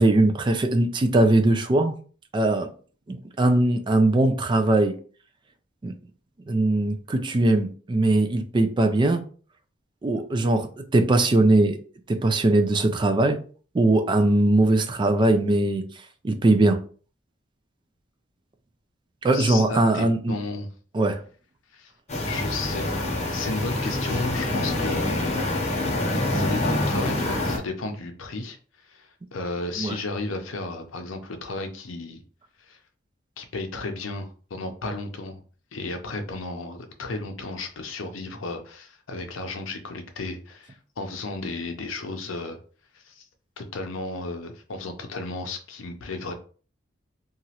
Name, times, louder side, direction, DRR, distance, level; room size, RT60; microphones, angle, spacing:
voice 1, 0.0-1.9 2.3-2.7 3.1-4.9 5.8-5.9 6.5-9.2 10.0-11.8 12.1-13.4 13.7-15.8 16.2-16.8 19.2-20.4 20.9-21.2 29.8-30.0, right 2 dB, 25° right, 0.3 m, -20 dB
voice 2, 19.3-20.7 21.7-21.9 22.2-22.8 23.3-25.4 26.3-28.6 28.8-32.2 32.7-32.8 33.4-35.4 35.7-42.6 42.9-43.3 43.6-46.3, left 3 dB, 85° left, 0.6 m, -33 dB
sound 1, 22.1-27.6, left 1 dB, 35° left, 0.8 m, -26 dB
2.9 x 2.4 x 2.8 m
head